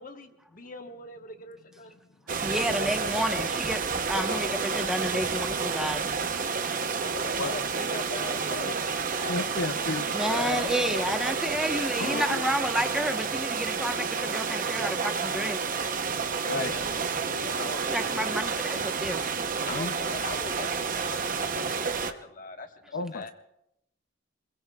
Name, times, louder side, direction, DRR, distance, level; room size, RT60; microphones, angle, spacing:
voice 1, 0.0-2.0 4.3-4.9 6.9-9.9 10.2-10.8 16.4-18.4 19.6-20.7 20.9-23.3, left 3 dB, 45° left, 5 dB, 1.2 m, -41 dB
sound 1, 2.3-22.1, right 5 dB, 45° right, 0.8 m, -30 dB
voice 2, 2.4-6.1 10.1-15.6 17.9-19.3, equal, 5° right, 4 dB, 0.9 m, -30 dB
voice 3, 9.3-10.7 12.0-12.4 16.5-16.7 19.7-19.9 22.9-23.3, left 3 dB, 60° left, 9 dB, 0.5 m, -32 dB
26.5 x 21.5 x 2.3 m, 0.82 s
head